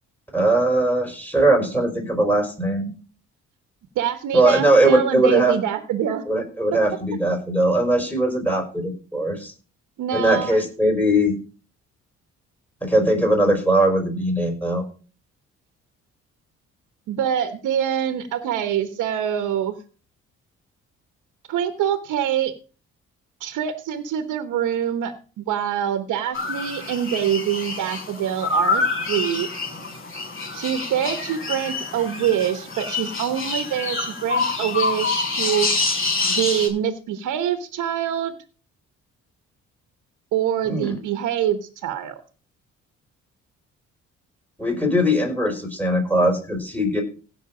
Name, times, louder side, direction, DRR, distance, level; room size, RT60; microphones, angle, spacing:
voice 1, 0.3-2.9 4.3-5.5 6.3-9.5 10.1-11.3 12.8-14.8 40.6-40.9 44.6-47.0, right 1 dB, 5° left, 3 dB, 5.0 m, -20 dB
voice 2, 3.9-6.2 10.0-10.6 17.1-19.7 21.5-22.5 23.4-29.5 30.5-35.7 36.3-38.3 40.3-42.2, right 10 dB, 85° right, 8 dB, 1.2 m, -25 dB
sound 1, 26.3-36.7, left 3 dB, 45° left, 5.3 m, -26 dB
16.0 x 6.0 x 5.0 m, 0.38 s
cardioid pair, 90°, 30 cm